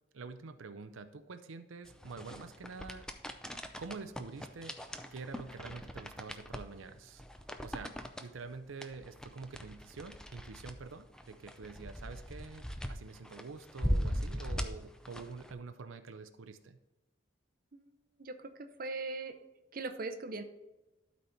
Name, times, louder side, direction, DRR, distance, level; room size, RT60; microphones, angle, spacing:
voice 1, 0.1-3.1 3.8-4.8 5.1-7.2 7.6-7.9 8.2-16.8, right 4 dB, 85° right, 10 dB, 0.6 m, -47 dB
sound 1, 1.9-15.5, equal, 5° left, 0.5 m, -40 dB
voice 2, 18.2-19.3 19.7-20.4, right 3 dB, 45° right, 7 dB, 0.7 m, -40 dB
12.0 x 4.2 x 4.4 m, 1.1 s
head